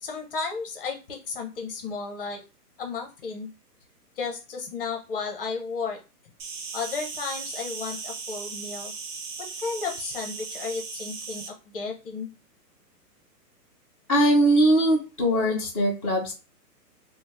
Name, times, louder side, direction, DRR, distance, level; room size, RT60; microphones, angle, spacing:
voice 1, 0.0-2.4 2.8-3.5 4.2-6.0 6.7-8.9 9.6-12.3, left 5 dB, 35° left, 2 dB, 0.5 m, -33 dB
Insect, 6.4-11.5, right 4 dB, 75° right, 0.9 m, -37 dB
voice 2, 14.1-16.3, right 1 dB, 15° right, -7 dB, 0.4 m, -21 dB
2.6 x 2.0 x 3.2 m, 0.30 s
hypercardioid pair, 145°, 48 cm